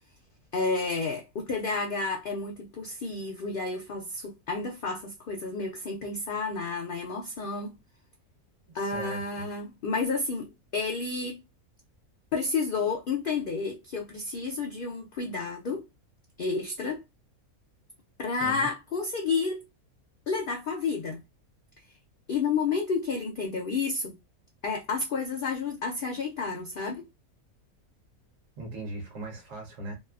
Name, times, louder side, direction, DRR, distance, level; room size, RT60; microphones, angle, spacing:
voice 1, 0.5-7.7 8.7-11.4 12.3-15.9 16.4-17.0 18.2-19.6 20.3-21.2 22.3-24.2 24.6-27.1, left 4 dB, 85° left, 0.4 m, -30 dB
voice 2, 8.7-9.5 18.4-18.7 28.6-29.9, right 2 dB, 65° right, 1.1 m, -39 dB
2.8 x 2.3 x 2.3 m
omnidirectional pair, 1.5 m